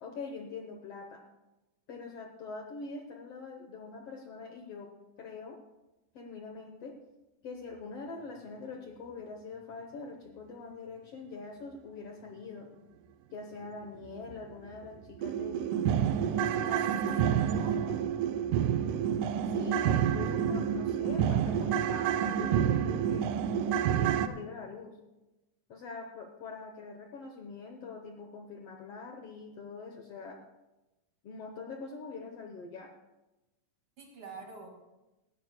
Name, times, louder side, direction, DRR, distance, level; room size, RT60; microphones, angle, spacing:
voice 1, 0.0-1.2 1.9-4.9 5.2-5.6 6.1-6.9 7.4-12.7 13.3-15.8 16.5-17.6 19.5-23.3 24.0-24.9 25.7-30.4 31.2-32.9, left 4 dB, 65° left, 3 dB, 1.7 m, -44 dB
sound 1, 14.3-14.4 14.8-14.9 15.2-24.3, right 9 dB, 90° right, 2.2 m, -28 dB
voice 2, 16.5-17.2 17.6-17.9 34.0-34.7, right 4 dB, 50° right, 1 dB, 2.7 m, -47 dB
18.5 x 13.5 x 2.2 m, 1.0 s
omnidirectional pair, 3.5 m